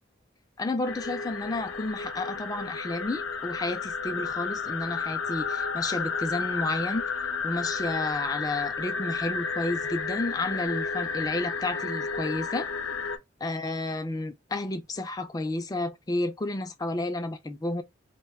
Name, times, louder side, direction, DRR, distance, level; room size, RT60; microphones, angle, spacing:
voice 1, 0.6-7.0 7.4-12.7 13.4-17.8, left 2 dB, 20° left, 0.3 m, -31 dB
sound 1, 0.8-13.2, left 5 dB, 90° left, 0.5 m, -32 dB
2.2 x 2.1 x 3.4 m
head